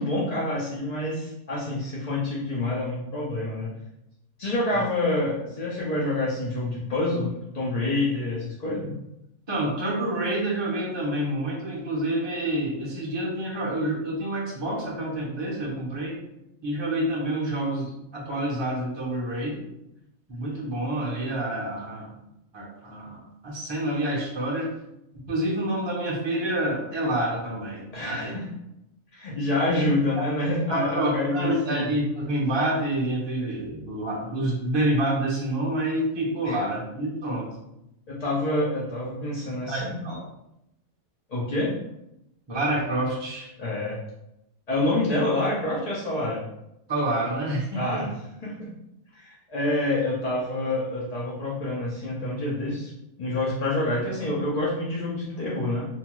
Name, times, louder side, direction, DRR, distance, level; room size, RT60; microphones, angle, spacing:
voice 1, 0.0-3.7 4.4-8.9 27.9-28.4 29.1-31.9 36.4-36.6 38.1-40.0 41.3-41.7 43.6-44.0 44.7-46.4 47.8-48.1 48.4-48.7 49.1-52.9 53.2-55.9, left 2 dB, 60° left, -6 dB, 0.4 m, -27 dB
voice 2, 9.5-16.2 16.6-19.6 20.3-22.1 22.5-24.7 25.3-28.3 30.2-30.3 30.7-37.6 39.7-40.2 42.5-43.5 46.9-48.1, right 1 dB, 30° right, -4 dB, 0.5 m, -28 dB
2.7 x 2.2 x 3.0 m, 0.83 s
omnidirectional pair, 1.5 m